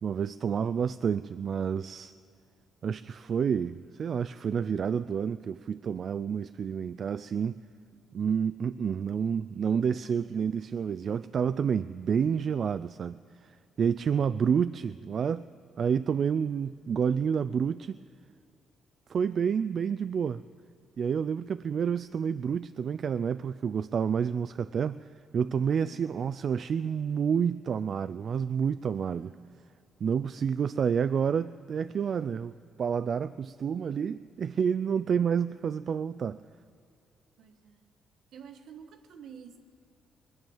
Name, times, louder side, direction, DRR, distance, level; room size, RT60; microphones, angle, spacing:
voice 1, 0.0-2.1 2.8-7.6 8.1-15.5 15.8-18.0 19.1-20.4 21.0-25.1 25.3-29.3 30.0-32.5 32.8-36.4, right 7 dB, 55° right, 13 dB, 0.3 m, -29 dB
voice 2, 7.9-8.2 10.0-10.5 13.8-14.3 16.3-16.7 28.9-29.7 34.5-35.2 37.4-37.9 38.3-39.6, right 7 dB, 75° right, 7 dB, 1.4 m, -52 dB
21.5 x 9.3 x 7.2 m, 2.5 s
cardioid pair, 90°, 0 cm